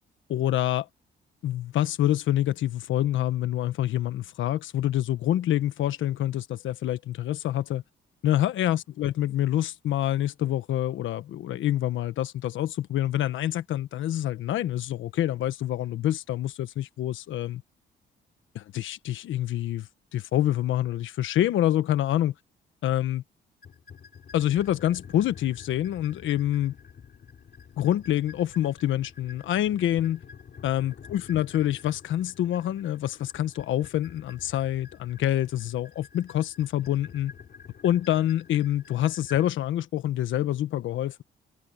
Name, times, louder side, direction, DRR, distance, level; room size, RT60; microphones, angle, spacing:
voice 1, 0.3-0.9 1.4-7.8 8.2-17.6 18.5-22.3 22.8-23.2 24.3-26.7 27.8-30.2 30.6-37.3 37.8-41.2, left 12 dB, 80° left, 1.3 m, -26 dB
sound 1, 23.6-39.5, left 6 dB, 50° left, 3.7 m, -49 dB
cardioid pair, 90°, 20 cm